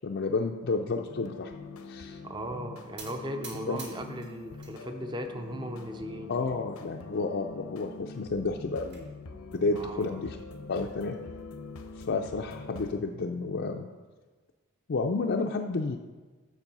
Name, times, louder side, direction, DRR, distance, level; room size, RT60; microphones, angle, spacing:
voice 1, 0.0-1.5 1.9-2.2 3.7-3.8 6.3-9.1 9.5-10.4 10.7-11.2 12.0-13.9 14.9-16.0, left 3 dB, 50° left, 2 dB, 0.4 m, -31 dB
sound 1, 1.1-13.0, left 3 dB, 90° left, 0.8 m, -44 dB
voice 2, 2.2-6.3 9.7-10.2, right 1 dB, 20° right, 6 dB, 0.6 m, -38 dB
sound 2, 3.0-4.8 5.1-5.8 6.3-6.4 6.7-6.8 7.2-7.3 8.4-9.0, right 4 dB, 50° right, 1.8 m, -47 dB
7.3 x 7.0 x 5.3 m, 1.3 s
head